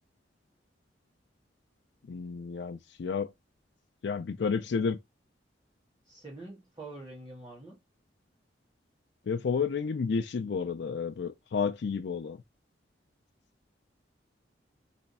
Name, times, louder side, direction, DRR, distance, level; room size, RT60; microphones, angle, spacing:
voice 1, 2.1-3.3 4.0-5.0 9.3-12.4, left 5 dB, 70° left, 0.4 m, -31 dB
voice 2, 6.0-7.8, right 2 dB, 25° right, 1.6 m, -45 dB
3.4 x 3.1 x 4.1 m
head